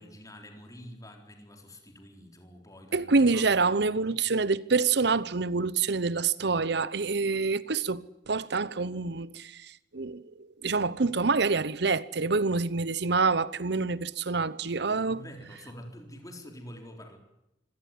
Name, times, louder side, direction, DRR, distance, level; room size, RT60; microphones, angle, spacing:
voice 1, 0.0-4.2 15.1-17.2, equal, 20° left, 4.0 m, -47 dB
voice 2, 2.9-10.2 10.6-15.2, right 4 dB, 70° right, 0.9 m, -27 dB
25.5 x 16.5 x 9.6 m
head